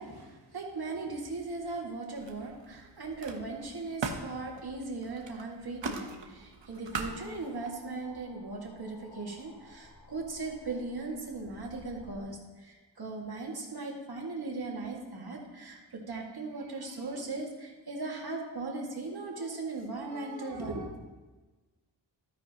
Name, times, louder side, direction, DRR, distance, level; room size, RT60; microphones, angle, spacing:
voice 1, 0.0-20.9, right 3 dB, 55° right, -1 dB, 2.4 m, -38 dB
Camera, 1.2-1.9 2.2-7.7, right 4 dB, 75° right, 1.2 m, -41 dB
sound 1, 6.9-12.2, left 2 dB, 75° left, 3.8 m, -55 dB
13.0 x 10.5 x 3.1 m, 1.2 s
wide cardioid pair, 95°, 44 cm